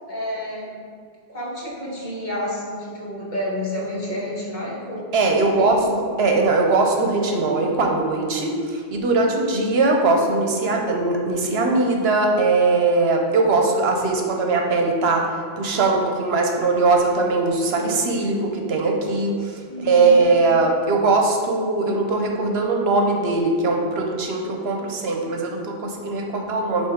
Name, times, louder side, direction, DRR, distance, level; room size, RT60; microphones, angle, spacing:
voice 1, 0.1-0.8 1.3-5.1 5.4-5.9 19.7-20.4, left 1 dB, 45° left, -5 dB, 1.4 m, -29 dB
voice 2, 5.1-5.8 6.2-8.6 8.9-15.2 15.6-19.5 19.8-26.9, right 3 dB, 70° right, 2 dB, 1.0 m, -20 dB
7.3 x 2.9 x 5.0 m, 2.1 s
omnidirectional pair, 1.1 m